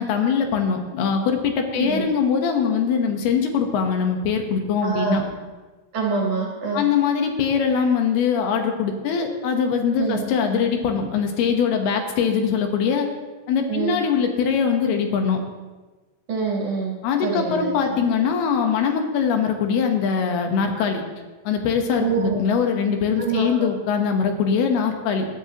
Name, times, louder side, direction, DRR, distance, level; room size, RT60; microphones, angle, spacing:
voice 1, 0.0-5.2 6.7-13.1 13.5-15.4 17.0-21.0 21.4-25.3, left 6 dB, 80° left, 4 dB, 3.1 m, -22 dB
voice 2, 4.8-5.3 5.9-6.8 10.0-10.2 13.7-14.0 16.3-16.9 17.2-17.9 22.0-22.4 23.2-23.7, right 5 dB, 50° right, -3 dB, 4.1 m, -25 dB
20.0 x 11.5 x 3.0 m, 1.3 s
omnidirectional pair, 4.6 m